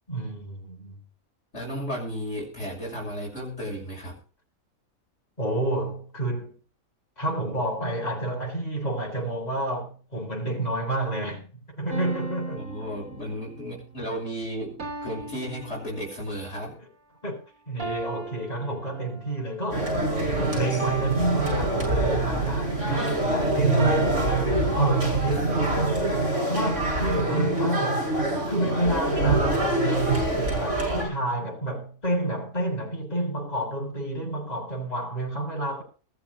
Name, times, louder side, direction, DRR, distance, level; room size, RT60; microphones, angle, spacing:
voice 1, 0.1-1.0 5.4-6.5 7.2-12.7 16.6-16.7 17.2-17.4 17.7-19.9 20.3-24.3 24.8-25.8 26.5-28.0 28.5-35.8, right 1 dB, 30° left, 8.1 m, -29 dB
voice 2, 1.5-4.2 12.5-16.8 25.2-26.0, equal, 55° left, 6.6 m, -34 dB
sound 1, 11.9-13.7 14.8-16.4 17.8-19.5 20.8-22.3 23.8-24.6, right 3 dB, 80° right, 3.6 m, -38 dB
sound 2, 19.7-31.0, right 2 dB, 60° right, 7.7 m, -25 dB
21.0 x 7.5 x 5.6 m
omnidirectional pair, 1.4 m